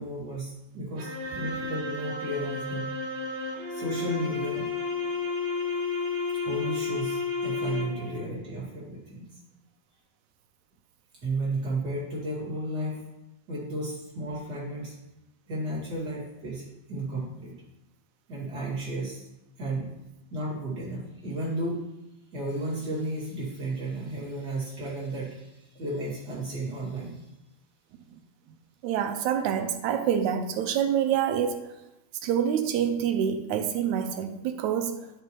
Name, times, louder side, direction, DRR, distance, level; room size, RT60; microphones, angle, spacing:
voice 1, 0.0-2.8 3.7-4.7 6.5-9.3 11.2-13.0 13.5-15.0 15.5-17.5 18.3-19.3 19.6-20.0 20.3-21.8 22.3-27.2, right 1 dB, 35° right, -6 dB, 2.4 m, -33 dB
sound 1, 1.0-8.2, left 4 dB, 65° right, 1.0 m, -32 dB
voice 2, 28.8-31.6 32.2-35.1, right 8 dB, 85° right, 6 dB, 2.0 m, -26 dB
10.5 x 5.0 x 3.1 m, 0.94 s
omnidirectional pair, 3.3 m